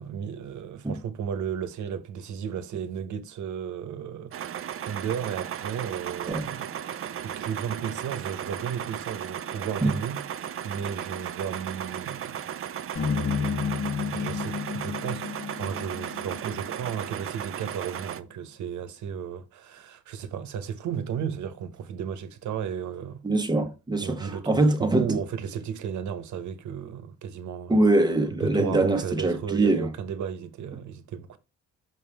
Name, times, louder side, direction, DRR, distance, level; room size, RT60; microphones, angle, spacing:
voice 1, 0.0-4.5 4.8-10.3 10.6-12.4 14.1-23.2 24.0-27.8 28.4-31.4, right 8 dB, 70° right, 1.0 m, -34 dB
sound 1, 4.3-18.2, right 9 dB, 45° right, 0.6 m, -35 dB
sound 2, 13.0-17.3, left 6 dB, 45° left, 1.1 m, -31 dB
voice 2, 23.2-25.2 27.7-29.9, right 2 dB, 15° right, 1.1 m, -23 dB
6.1 x 5.6 x 3.5 m
cardioid pair, 90°, 30 cm